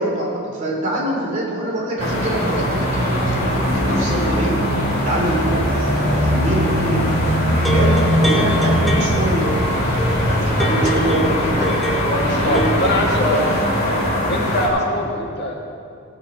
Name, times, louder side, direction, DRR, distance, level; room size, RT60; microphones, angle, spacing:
voice 1, 0.0-4.6 5.0-9.5 9.9-11.7 12.0-13.2 13.8-14.2 15.0-15.1, right 1 dB, 35° right, -4 dB, 2.9 m, -25 dB
sound 1, 2.0-14.7, equal, 35° left, 2.6 m, -20 dB
sound 2, 7.5-13.4, right 1 dB, ahead, 1.1 m, -27 dB
voice 2, 12.4-13.5 14.3-15.5, left 1 dB, 50° left, -1 dB, 1.7 m, -22 dB
17.5 x 7.7 x 5.0 m, 2.4 s
head